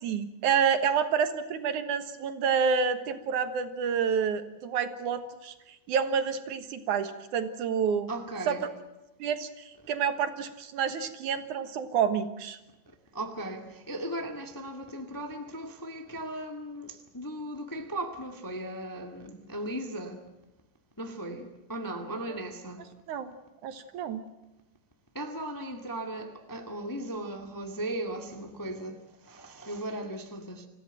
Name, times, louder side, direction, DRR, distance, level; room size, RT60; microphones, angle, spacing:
voice 1, 0.0-5.5 5.9-8.1 8.5-8.6 9.2-12.6 23.1-23.3 23.6-24.2, right 7 dB, 75° right, 2.9 m, -28 dB
voice 2, 8.1-8.7 13.1-20.2 21.0-22.8 25.1-30.7, right 1 dB, 10° left, 1.2 m, -37 dB
27.0 x 16.0 x 9.0 m
omnidirectional pair, 3.6 m